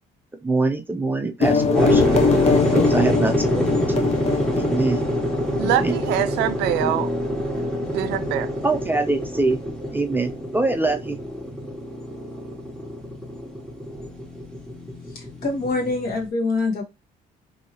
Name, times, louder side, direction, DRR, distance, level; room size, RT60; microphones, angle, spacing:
voice 1, 0.4-2.2 2.7-4.1 4.6-5.0 5.6-6.0 6.8-6.9 8.6-9.6 9.9-11.2, right 3 dB, 10° right, 0.4 m, -24 dB
sound 1, 1.4-6.8, left 5 dB, 40° left, 0.6 m, -23 dB
sound 2, 1.7-16.3, equal, 5° left, 1.0 m, -25 dB
voice 2, 5.6-7.1 7.6-8.5, right 12 dB, 85° right, 0.4 m, -24 dB
voice 3, 15.1-16.8, left 3 dB, 60° left, 1.3 m, -25 dB
2.7 x 2.7 x 2.9 m
cardioid pair, 110°, 17 cm